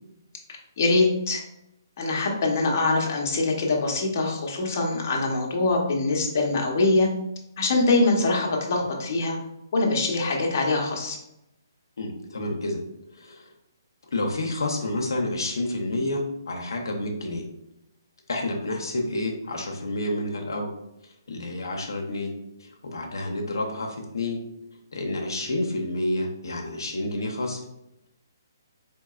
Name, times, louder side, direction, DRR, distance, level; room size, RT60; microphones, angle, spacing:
voice 1, 0.8-1.4 2.0-7.1 7.6-9.4 9.7-11.2, left 3 dB, 45° left, -1 dB, 0.9 m, -23 dB
voice 2, 12.0-12.8 13.1-13.5 14.1-17.5 18.3-20.7 21.0-22.3 22.6-24.4 24.9-27.6, left 1 dB, 85° left, 1 dB, 0.7 m, -29 dB
4.4 x 2.8 x 2.4 m, 0.84 s
hypercardioid pair, 160°, 2 cm